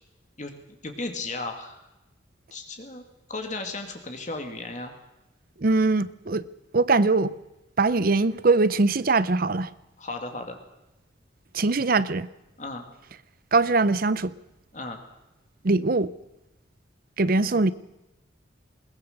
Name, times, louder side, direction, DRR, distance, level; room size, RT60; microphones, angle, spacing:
voice 1, 0.8-1.8 2.5-3.0 3.3-4.9 10.0-10.6 12.6-12.8 14.7-15.0 17.5-17.7, left 2 dB, 40° left, 2.3 m, -35 dB
voice 2, 5.6-6.5 6.7-7.3 7.8-9.7 11.5-12.3 13.5-14.3 15.6-16.1 17.2-17.7, right 3 dB, 50° right, 0.7 m, -22 dB
21.0 x 20.0 x 6.7 m
head